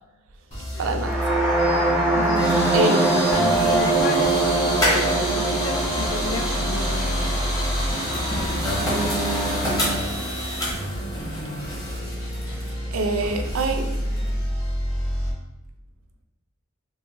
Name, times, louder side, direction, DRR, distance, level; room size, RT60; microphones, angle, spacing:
sound 1, 0.5-15.3, equal, 40° left, 1.5 m, -30 dB
voice 1, 0.8-1.5 2.7-3.4 8.8-9.8 12.9-13.9, right 2 dB, 75° right, 5 dB, 0.4 m, -26 dB
sound 2, 1.0-8.9, right 2 dB, 5° right, 0.4 m, -23 dB
sound 3, 1.6-14.3, equal, 20° left, 0.7 m, -28 dB
voice 2, 2.1-7.4, left 3 dB, 75° left, 6 dB, 0.4 m, -33 dB
3.3 x 2.1 x 3.0 m, 0.93 s
head